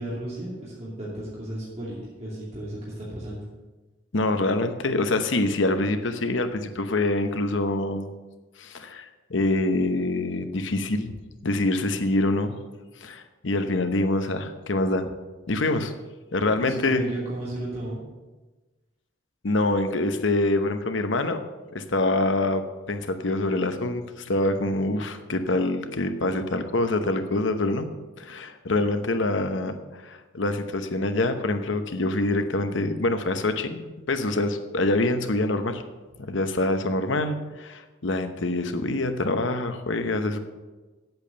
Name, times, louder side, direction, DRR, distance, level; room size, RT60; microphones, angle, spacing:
voice 1, 0.0-3.5 16.6-18.0, right 1 dB, 35° right, -7 dB, 2.7 m, -34 dB
voice 2, 4.1-8.1 8.6-11.1 11.4-12.5 13.0-15.1 15.5-15.9 16.3-17.0 19.4-21.4 21.7-27.9 28.2-35.8 36.2-40.4, left 2 dB, 70° left, 8 dB, 0.9 m, -25 dB
8.8 x 8.0 x 6.8 m, 1.2 s
head